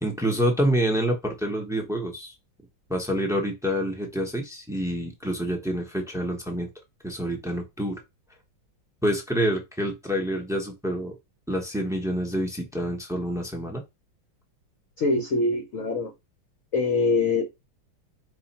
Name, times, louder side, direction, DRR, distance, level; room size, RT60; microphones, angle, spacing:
voice 1, 0.0-2.3 2.9-6.7 7.0-8.0 9.0-11.1 11.5-13.8, equal, 5° right, 0.3 m, -27 dB
voice 2, 15.0-16.1 16.7-17.5, left 3 dB, 60° left, 0.9 m, -24 dB
4.9 x 2.5 x 4.2 m
omnidirectional pair, 2.2 m